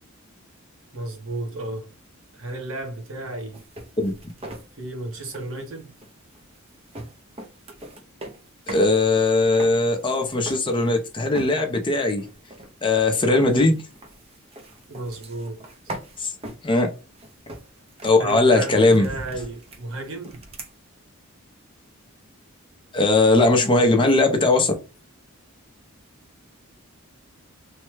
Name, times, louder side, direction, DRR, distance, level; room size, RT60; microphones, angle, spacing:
voice 1, 0.9-1.9 2.3-3.6 4.8-5.9 14.9-15.9 18.2-20.4, right 2 dB, 65° right, 1.0 m, -33 dB
sound 1, 3.5-8.9 9.2-11.1 11.3-11.8 12.2-20.7, right 1 dB, 30° right, 0.5 m, -40 dB
voice 2, 8.7-12.2 12.8-13.8 16.2-16.3 16.6-16.9 18.0-19.1 22.9-24.7, left 2 dB, 20° left, 0.5 m, -19 dB
3.1 x 2.1 x 3.1 m
head